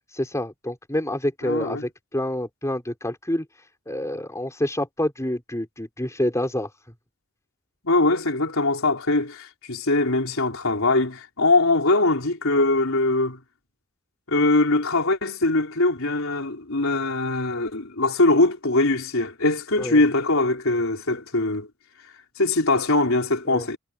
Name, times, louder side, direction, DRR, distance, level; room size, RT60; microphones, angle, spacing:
voice 1, 0.1-3.5 3.9-6.7 19.8-20.0 23.5-23.7, left 1 dB, 15° left, 5.4 m, -27 dB
voice 2, 1.4-1.9 7.8-13.4 14.3-21.7 22.4-23.8, left 2 dB, 70° left, 4.5 m, -22 dB
head